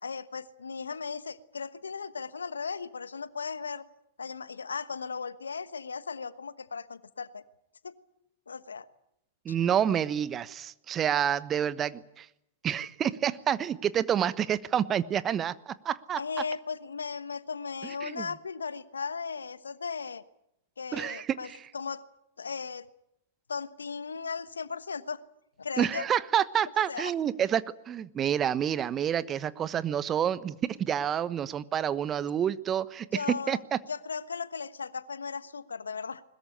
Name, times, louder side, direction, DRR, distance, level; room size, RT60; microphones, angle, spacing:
voice 1, 0.0-3.9 4.2-7.4 7.8-7.9 8.5-8.9 16.2-20.2 20.8-21.5 21.7-22.0 22.4-22.9 23.5-25.2 25.6-26.1 26.9-27.1 33.1-33.6 33.9-36.2, left 5 dB, 80° left, 15 dB, 1.2 m, -36 dB
voice 2, 9.4-12.3 12.6-16.2 17.8-18.3 20.9-21.6 25.8-33.8, right 9 dB, 25° right, 16 dB, 1.1 m, -28 dB
21.5 x 21.0 x 9.9 m, 0.79 s
figure-of-eight pair, 100°, 0 cm